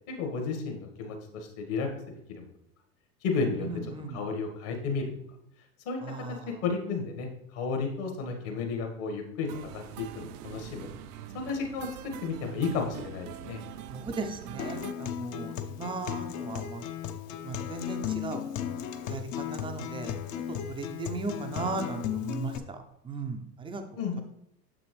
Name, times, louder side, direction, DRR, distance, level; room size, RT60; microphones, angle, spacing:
voice 1, 0.2-1.9 2.3-2.4 3.2-3.7 4.1-5.0 5.8-6.0 6.6-10.9 11.3-13.6 24.0-24.2, left 4 dB, 55° left, 3 dB, 1.8 m, -32 dB
voice 2, 3.6-4.2 6.0-6.5 13.9-16.8 17.4-18.4 19.1-20.1 20.7-23.8, right 3 dB, 10° right, 5 dB, 0.4 m, -37 dB
sound 1, 9.5-14.9, right 10 dB, 65° right, 0.5 m, -44 dB
Acoustic guitar, 14.6-22.6, left 9 dB, 40° left, 0.6 m, -36 dB
6.9 x 6.1 x 3.2 m, 0.79 s
hypercardioid pair, 85°, 49 cm